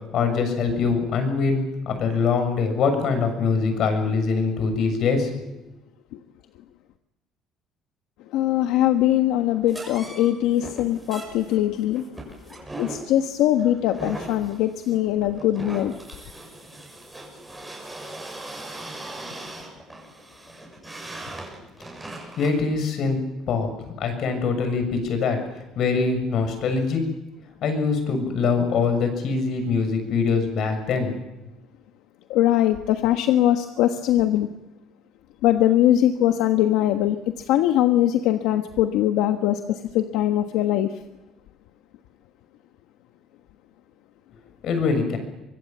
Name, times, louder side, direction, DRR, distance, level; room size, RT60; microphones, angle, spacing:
voice 1, 0.1-5.3 22.4-25.4 25.8-27.1 27.6-31.1 44.6-45.2, left 4 dB, 60° left, 7 dB, 6.9 m, -23 dB
voice 2, 8.3-12.3 12.8-16.0 32.3-34.5 35.4-40.9, left 12 dB, 85° left, 6 dB, 1.3 m, -21 dB
sound 1, 9.7-22.6, right 2 dB, 10° right, 7.0 m, -39 dB
25.0 x 22.0 x 7.5 m, 0.98 s
cardioid pair, 125°, 0 cm